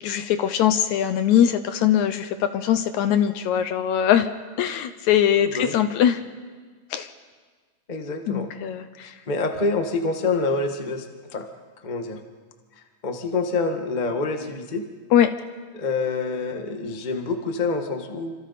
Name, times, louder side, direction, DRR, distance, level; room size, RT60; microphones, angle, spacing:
voice 1, 0.0-4.3 4.6-6.2 6.9-7.1 8.3-9.1 15.1-15.3, left 10 dB, 75° left, 10 dB, 1.9 m, -21 dB
voice 2, 5.4-5.7 7.9-8.5 9.0-11.1 11.3-11.4 11.8-12.2 13.0-14.8 15.7-18.3, left 3 dB, 40° left, 4 dB, 0.6 m, -26 dB
27.5 x 26.5 x 4.2 m, 1.5 s
omnidirectional pair, 3.8 m